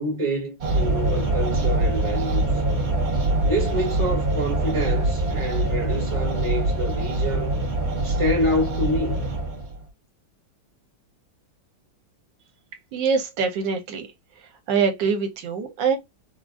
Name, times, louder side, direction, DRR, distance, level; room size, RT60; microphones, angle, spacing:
voice 1, 0.0-2.6 3.4-7.6 8.0-9.2, equal, 20° right, 1.2 m, -27 dB
sound 1, 0.6-9.8, right 2 dB, 45° right, 1.0 m, -24 dB
voice 2, 12.9-14.1 14.7-16.0, right 5 dB, 75° right, 1.3 m, -24 dB
3.8 x 2.3 x 2.3 m
omnidirectional pair, 2.1 m